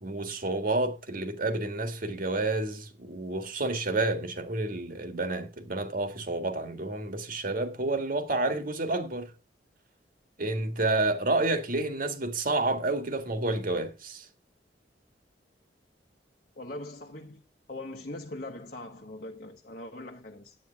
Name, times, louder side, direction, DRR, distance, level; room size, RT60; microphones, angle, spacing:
voice 1, 0.0-9.3 10.4-14.3, right 2 dB, 50° right, 1.9 m, -29 dB
voice 2, 16.6-17.4 17.7-20.6, left 2 dB, 50° left, 1.2 m, -41 dB
9.5 x 9.0 x 4.7 m
head